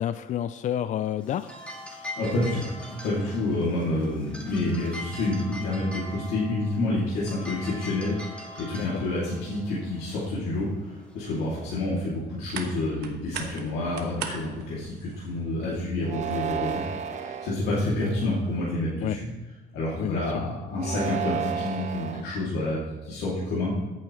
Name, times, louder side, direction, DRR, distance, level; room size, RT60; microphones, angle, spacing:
voice 1, 0.0-1.5 8.7-9.0 19.0-19.2 20.0-20.2, left 11 dB, 45° left, 12 dB, 0.4 m, -29 dB
sound 1, 1.2-11.6, left 1 dB, 5° left, 2.3 m, -42 dB
voice 2, 2.2-16.9 17.1-19.3 19.7-23.7, left 2 dB, 80° left, -7 dB, 2.7 m, -28 dB
sound 2, 11.6-16.8, right 7 dB, 75° right, 1.3 m, -41 dB
sound 3, 16.0-17.5 18.2-18.7 20.7-22.2, right 8 dB, 45° right, 1.1 m, -32 dB
14.5 x 8.5 x 3.2 m, 1.2 s
cardioid pair, 110°, 17 cm